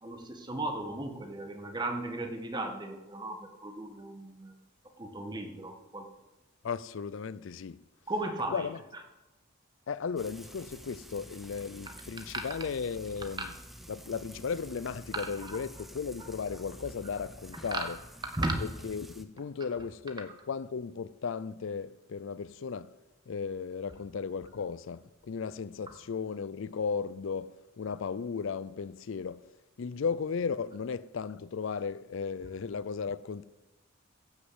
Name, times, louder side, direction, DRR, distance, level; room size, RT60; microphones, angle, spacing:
voice 1, 0.0-4.6 5.0-6.1 8.1-9.0 15.1-15.5 17.7-18.0 18.3-18.6 25.9-26.0, right 2 dB, 20° right, 1.6 m, -36 dB
voice 2, 6.6-7.8 8.5-8.8 9.9-13.5 13.9-18.0 18.6-23.0 23.3-33.4, left 5 dB, 65° left, 0.4 m, -35 dB
Frying (food), 10.2-19.2, equal, ahead, 0.7 m, -50 dB
16.0 x 6.5 x 8.0 m
head